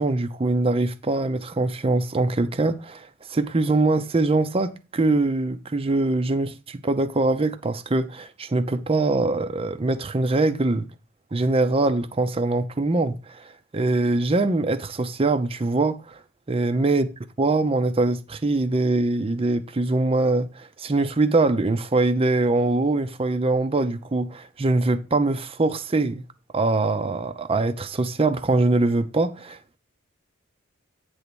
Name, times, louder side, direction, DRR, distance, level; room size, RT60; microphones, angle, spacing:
voice 1, 0.0-10.9 11.3-16.2 16.5-17.1 17.4-26.2 26.5-29.6, right 2 dB, 25° right, 0.6 m, -23 dB
9.4 x 3.5 x 6.8 m
head